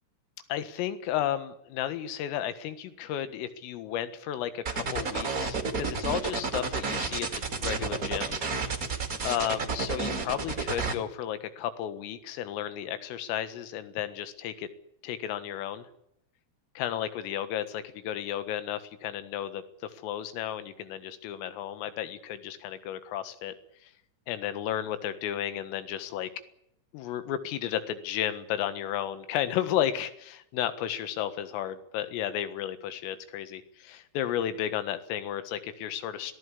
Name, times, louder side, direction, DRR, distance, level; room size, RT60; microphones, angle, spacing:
voice 1, 0.5-8.4 9.2-14.7 15.0-15.9 16.8-23.5 23.8-23.9 24.3-26.3 26.9-36.3, left 11 dB, 80° left, 12 dB, 4.2 m, -33 dB
sound 1, 4.6-10.9, right 4 dB, 40° right, 1.2 m, -31 dB
25.0 x 18.0 x 8.5 m, 0.79 s
omnidirectional pair, 5.9 m